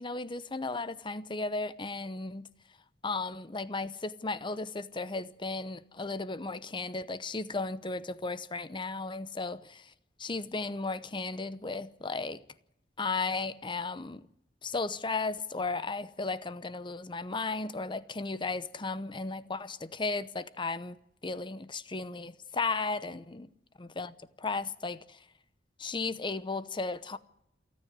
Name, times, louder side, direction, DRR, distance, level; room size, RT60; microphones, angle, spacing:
voice 1, 0.0-2.5 3.0-9.9 10.2-12.4 13.0-14.3 14.6-21.0 21.2-23.5 23.8-25.2 25.8-27.2, left 3 dB, 25° left, 0.8 m, -35 dB
28.0 x 9.6 x 9.7 m
head